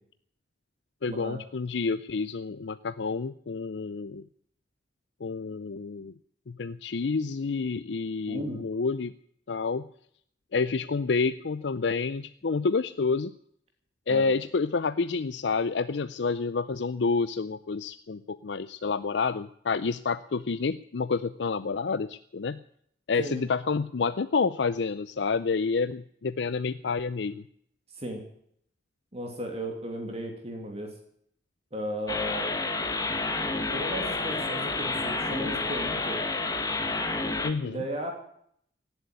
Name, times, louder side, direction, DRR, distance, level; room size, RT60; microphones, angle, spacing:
voice 1, 1.0-4.2 5.2-6.1 6.5-9.1 9.5-9.9 10.5-13.3 14.1-22.6 23.1-27.5 37.4-37.8, left 4 dB, 75° left, 14 dB, 0.5 m, -29 dB
voice 2, 8.3-8.6 14.1-14.3 23.2-23.4 27.9-28.2 29.1-31.0 31.7-32.5 33.7-36.2 37.6-38.1, right 1 dB, 35° right, 2 dB, 2.7 m, -35 dB
sound 1, 32.1-37.5, left 3 dB, 20° left, 1.4 m, -29 dB
17.5 x 8.0 x 9.5 m, 0.68 s
head